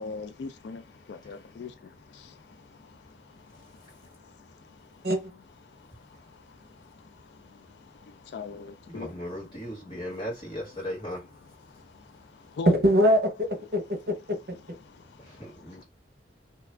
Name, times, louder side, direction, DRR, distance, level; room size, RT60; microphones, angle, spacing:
voice 1, 0.0-5.1 5.6-9.2 11.7-12.7 14.8-15.8, left 5 dB, 70° left, 0.3 m, -43 dB
voice 2, 3.5-4.1 6.1-6.2 8.9-11.4 15.2-15.8, equal, 25° left, 1.7 m, -38 dB
voice 3, 12.7-14.4, equal, 55° right, 0.8 m, -22 dB
2.7 x 2.4 x 3.2 m
head